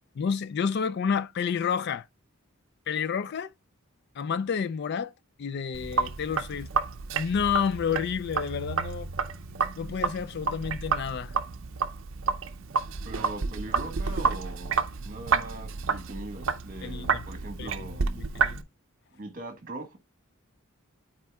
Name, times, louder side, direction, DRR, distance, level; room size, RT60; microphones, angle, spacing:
voice 1, 0.2-2.1 2.9-3.5 4.2-5.1 5.4-6.7 7.1-9.1 9.8-11.3 16.8-17.3 17.6-18.7, left 6 dB, 50° left, 0.3 m, -30 dB
Sink (filling or washing), 5.7-18.6, right 5 dB, 60° right, 0.5 m, -30 dB
voice 2, 13.0-14.8 15.0-18.0 19.1-20.0, right 2 dB, 40° right, 1.4 m, -40 dB
12.0 x 4.3 x 2.3 m
head